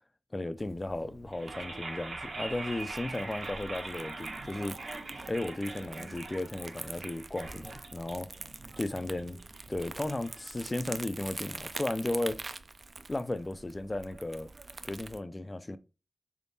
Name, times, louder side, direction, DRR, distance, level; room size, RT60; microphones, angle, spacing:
voice 1, 0.3-4.8 5.3-8.3 8.8-9.4 9.7-12.4 13.1-14.5 14.8-15.8, left 2 dB, 25° left, 0.4 m, -35 dB
Crumpling crinkling, 0.6-15.2, right 3 dB, 50° right, 0.3 m, -46 dB
sound 1, 1.3-11.3, right 3 dB, 75° right, 1.0 m, -43 dB
3.8 x 3.5 x 2.7 m
wide cardioid pair, 80°, 0 cm